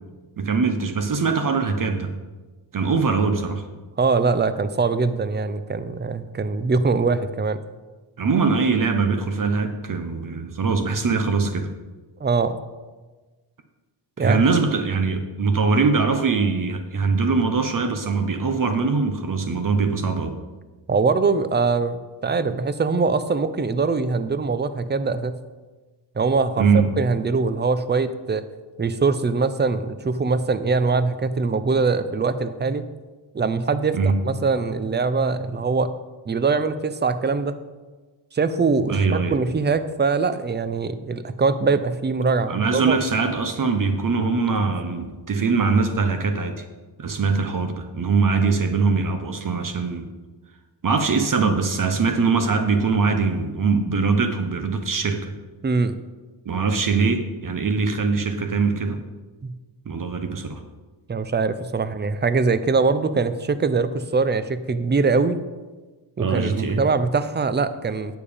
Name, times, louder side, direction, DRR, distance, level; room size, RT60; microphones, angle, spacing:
voice 1, 0.4-2.1 2.7-3.6 8.2-11.7 14.2-20.4 26.6-26.9 33.9-34.2 38.9-39.4 42.5-46.6 47.0-50.1 50.8-55.3 56.4-59.0 59.9-60.6 66.2-66.8, right 4 dB, 45° right, 7 dB, 0.9 m, -22 dB
voice 2, 4.0-7.6 12.2-12.6 14.2-14.4 20.9-25.3 26.2-26.7 27.0-28.4 28.8-32.8 33.3-34.0 34.2-35.9 36.3-37.5 38.3-43.0 55.6-56.0 59.4-59.5 61.1-65.4 66.2-68.2, right 4 dB, 25° right, 13 dB, 0.6 m, -22 dB
9.3 x 6.9 x 5.1 m, 1.3 s
cardioid pair, 85°, 45 cm